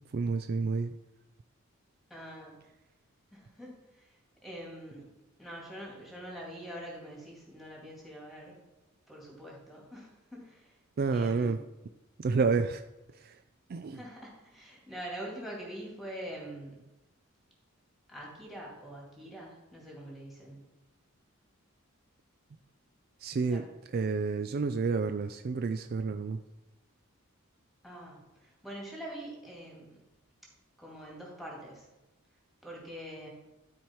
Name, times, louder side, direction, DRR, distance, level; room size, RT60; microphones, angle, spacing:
voice 1, 0.1-1.0 11.0-11.6 12.2-12.8 13.1-13.4 13.7-14.0 23.2-23.6 23.9-26.4, right 4 dB, 45° right, 8 dB, 0.3 m, -29 dB
voice 2, 2.1-2.6 3.3-5.1 5.4-8.6 9.1-10.7 11.1-11.6 13.9-16.8 18.1-20.6 23.5-23.6 27.8-30.0 30.8-31.9 32.6-33.3, right 1 dB, ahead, -3 dB, 2.3 m, -44 dB
12.0 x 4.7 x 4.4 m, 1.0 s
head